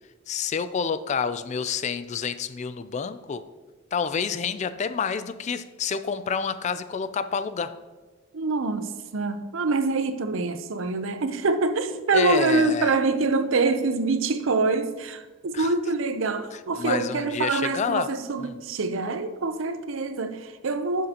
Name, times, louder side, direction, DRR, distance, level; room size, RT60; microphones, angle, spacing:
voice 1, 0.3-3.5 3.9-7.8 12.1-13.0 15.5-15.7 16.5-18.1 18.4-18.6, left 6 dB, 35° left, 0.3 m, -28 dB
voice 2, 8.3-21.1, right 3 dB, 65° right, 0.6 m, -25 dB
12.0 x 6.4 x 2.9 m
head